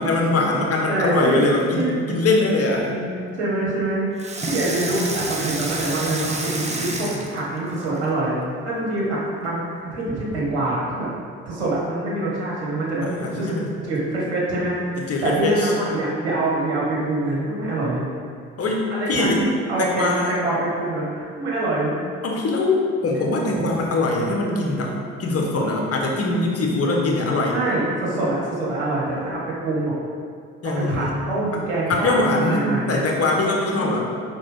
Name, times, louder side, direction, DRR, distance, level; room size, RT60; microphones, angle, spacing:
voice 1, 0.0-2.9 13.0-13.7 15.0-15.7 18.6-19.4 19.8-20.4 22.2-24.9 25.2-27.6 30.6-31.2 31.9-34.0, left 2 dB, 45° left, -1 dB, 1.3 m, -22 dB
voice 2, 0.9-1.4 1.7-1.9 2.9-8.4 8.6-11.1 11.4-13.0 13.4-13.5 13.8-18.0 18.9-22.0 23.6-23.7 27.5-29.9 30.6-33.1, right 2 dB, 85° right, -6 dB, 1.4 m, -25 dB
Water tap faucet / Sink (filling or washing), 1.2-1.9 4.2-8.1 8.8-8.9, right 2 dB, 20° right, 0.9 m, -30 dB
4.9 x 4.2 x 4.9 m, 2.3 s
hypercardioid pair, 50°, 34 cm